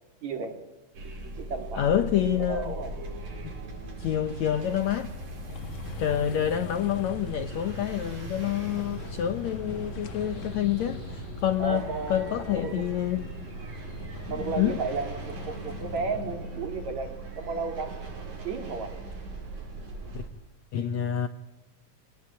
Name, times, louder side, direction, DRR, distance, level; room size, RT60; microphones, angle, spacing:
voice 1, 0.2-0.6 1.4-2.9 6.1-6.4 11.6-12.9 14.3-17.9 18.4-18.9, right 4 dB, 50° right, 3.9 m, -34 dB
sound 1, 0.9-20.3, right 2 dB, 70° right, 6.9 m, -40 dB
voice 2, 1.7-2.8 3.4-3.5 4.0-5.1 6.0-13.2 14.4-14.8 20.1-20.2 20.7-21.3, left 10 dB, 70° left, 1.8 m, -28 dB
sound 2, 5.5-16.3, left 3 dB, 55° left, 1.4 m, -42 dB
Subway metro underground, 8.4-19.2 19.5-20.2 20.5-20.6, left 3 dB, 20° left, 1.9 m, -52 dB
25.0 x 19.0 x 8.5 m
omnidirectional pair, 4.2 m